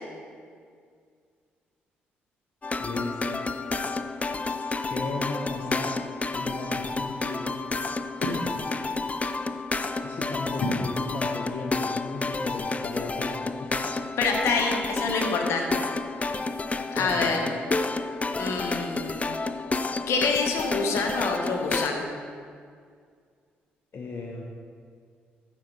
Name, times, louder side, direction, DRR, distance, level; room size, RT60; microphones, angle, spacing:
sound 1, 2.6-21.9, left 3 dB, 30° left, 0.5 m, -30 dB
voice 1, 2.8-3.5 4.8-5.9 6.4-7.6 10.0-13.8 16.4-16.5 17.0-17.3 23.9-24.4, left 3 dB, 50° left, 0 dB, 1.0 m, -35 dB
voice 2, 14.2-15.8 16.9-17.5 18.4-19.2 20.1-22.1, left 4 dB, 70° left, 2 dB, 1.4 m, -26 dB
13.5 x 6.5 x 3.4 m, 2.1 s
hypercardioid pair, 45°, 5 cm